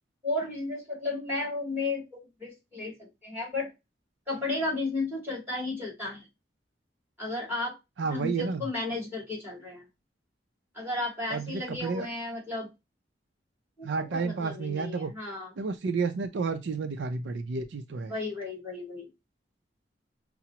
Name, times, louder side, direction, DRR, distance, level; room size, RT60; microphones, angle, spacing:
voice 1, 0.2-2.9 3.2-3.7 4.3-6.2 7.2-7.7 8.1-9.8 10.7-12.7 13.8-15.5 18.1-19.1, left 2 dB, 10° right, 2.6 m, -33 dB
voice 2, 8.0-8.7 11.3-12.1 13.8-15.1 15.6-18.1, right 4 dB, 70° right, 0.4 m, -31 dB
5.7 x 2.0 x 2.8 m
head